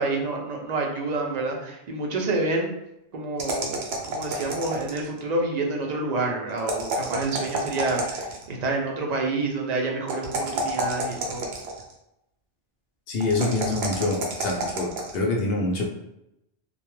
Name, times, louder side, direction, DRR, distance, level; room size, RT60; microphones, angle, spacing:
voice 1, 0.0-2.7 3.1-3.8 4.1-11.4, right 3 dB, 55° right, 0 dB, 0.5 m, -28 dB
sound 1, 3.4-5.2 6.6-8.5 10.1-11.9 13.2-15.2, right 2 dB, 75° right, 0.8 m, -30 dB
voice 2, 13.1-14.9 15.1-15.8, left 2 dB, 70° left, 0 dB, 0.8 m, -25 dB
2.2 x 2.2 x 3.0 m, 0.85 s
omnidirectional pair, 1.1 m